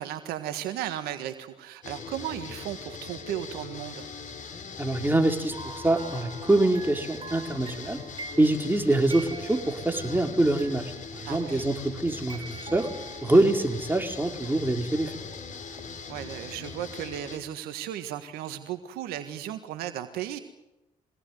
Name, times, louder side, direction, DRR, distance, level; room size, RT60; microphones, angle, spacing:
voice 1, 0.0-4.1 11.2-11.6 16.1-20.4, right 11 dB, 85° right, 9 dB, 1.7 m, -35 dB
sound 1, 1.8-17.4, left 5 dB, 55° left, 4.7 m, -41 dB
voice 2, 4.8-8.0 8.4-12.4 12.7-12.9 13.2-15.1, right 2 dB, 15° right, 3 dB, 4.5 m, -24 dB
sound 2, 5.5-11.4 12.0-14.1 14.9-15.9 16.2-16.3, right 4 dB, 35° right, 6.0 m, -45 dB
24.5 x 18.5 x 9.4 m, 0.94 s
hypercardioid pair, 50°, 16 cm